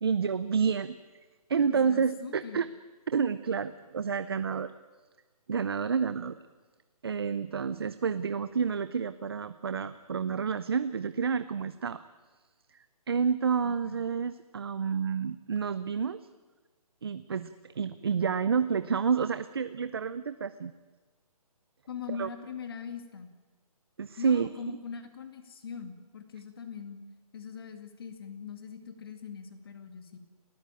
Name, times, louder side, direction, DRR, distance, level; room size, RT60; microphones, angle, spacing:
voice 1, 0.0-1.0 1.5-2.7 3.1-4.7 5.5-6.4 7.0-12.0 13.1-16.2 17.0-20.7 22.2-22.3 24.0-24.5, right 6 dB, 40° right, 13 dB, 0.6 m, -29 dB
voice 2, 1.7-2.6 13.6-14.0 21.9-23.3 24.2-27.0 27.3-30.2, left 6 dB, 40° left, 8 dB, 2.3 m, -41 dB
29.5 x 13.5 x 9.1 m, 1.3 s
hypercardioid pair, 175°, 19 cm